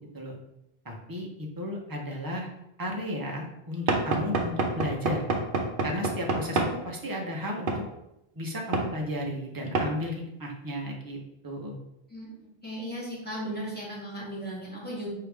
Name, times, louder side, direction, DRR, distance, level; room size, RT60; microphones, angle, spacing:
voice 1, 0.8-2.5 2.8-5.3 5.8-7.8 8.3-11.2 11.4-11.8, left 1 dB, 25° right, 0 dB, 0.7 m, -34 dB
Knock / Wood, 3.9-6.8 7.7-7.9 8.7-8.9 9.7-9.9, right 3 dB, 65° right, 0.7 m, -27 dB
voice 2, 12.6-15.1, equal, 10° left, -7 dB, 1.5 m, -36 dB
4.6 x 2.8 x 3.4 m, 0.87 s
omnidirectional pair, 1.0 m